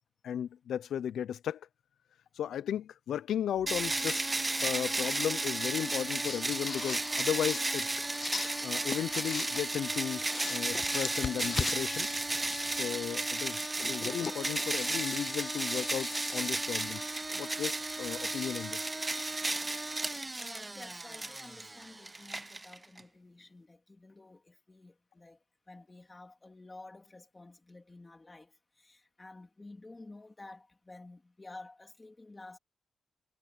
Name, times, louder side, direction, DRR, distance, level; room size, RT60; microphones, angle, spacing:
voice 1, 0.2-1.6 2.3-7.9 8.6-12.1 12.7-17.0 17.3-18.9, left 10 dB, 90° left, 0.5 m, -35 dB
sound 1, 3.6-4.2 5.9-6.0 6.3-9.9 10.2-13.0 13.9-18.7, left 5 dB, 40° left, 0.6 m, -42 dB
sound 2, 3.7-23.0, right 2 dB, 15° right, 0.6 m, -34 dB
voice 2, 20.4-25.4 25.7-32.6, left 2 dB, 15° left, 2.7 m, -51 dB
wide cardioid pair, 165°, 0 cm